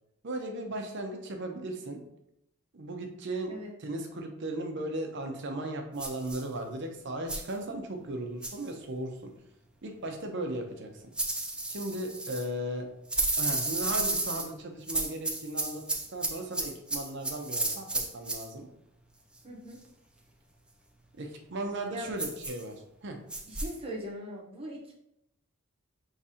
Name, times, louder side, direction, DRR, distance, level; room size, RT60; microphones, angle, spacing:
voice 1, 0.2-2.0 2.7-3.5 3.8-9.3 9.8-11.1 11.7-12.9 13.4-15.8 16.1-18.7 21.2-23.2, right 1 dB, 55° right, 4 dB, 0.7 m, -36 dB
sound 1, 6.0-6.4 7.3-7.5 8.4-8.7 11.2-12.5 13.1-14.5 14.9-18.5 22.2-22.6 23.3-23.7, right 2 dB, 5° right, 0.4 m, -32 dB
voice 2, 19.4-19.8 21.9-22.1 23.4-25.0, equal, 25° right, -2 dB, 1.0 m, -40 dB
4.9 x 3.2 x 2.8 m, 0.80 s
head